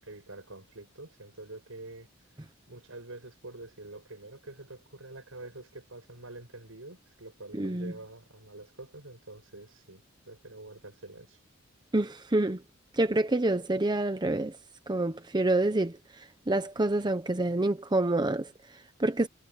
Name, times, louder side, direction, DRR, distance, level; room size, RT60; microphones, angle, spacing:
voice 1, 0.0-2.1 2.7-11.4, right 2 dB, 75° right, 6.9 m, -46 dB
voice 2, 7.5-7.9 11.9-12.6 12.9-14.6 14.9-19.3, right 2 dB, 20° right, 0.8 m, -28 dB
head